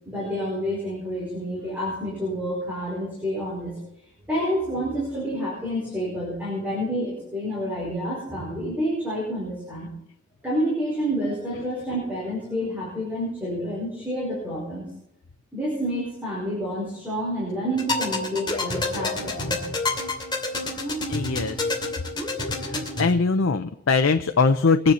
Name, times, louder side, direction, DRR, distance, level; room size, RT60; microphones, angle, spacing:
voice 1, 0.0-3.7 4.3-9.9 10.4-14.9 15.5-19.6, equal, 10° right, -6 dB, 5.0 m, -29 dB
sound 1, 17.8-23.1, left 2 dB, 25° left, 2.7 m, -28 dB
voice 2, 21.1-21.8 22.6-24.9, left 4 dB, 90° left, 7 dB, 0.6 m, -21 dB
22.5 x 9.7 x 4.3 m, 0.80 s
head